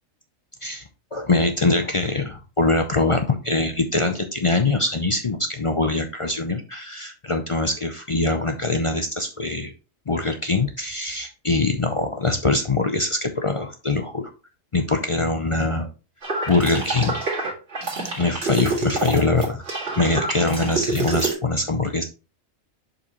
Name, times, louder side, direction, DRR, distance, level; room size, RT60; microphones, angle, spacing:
voice 1, 1.1-9.7 10.1-14.3 14.7-15.9 16.5-17.2 18.2-19.6 20.0-22.0, left 3 dB, 45° left, 6 dB, 0.4 m, -23 dB
sound 1, 16.2-21.3, right 3 dB, 55° right, 2.2 m, -27 dB
7.0 x 5.2 x 3.0 m, 0.32 s
omnidirectional pair, 1.4 m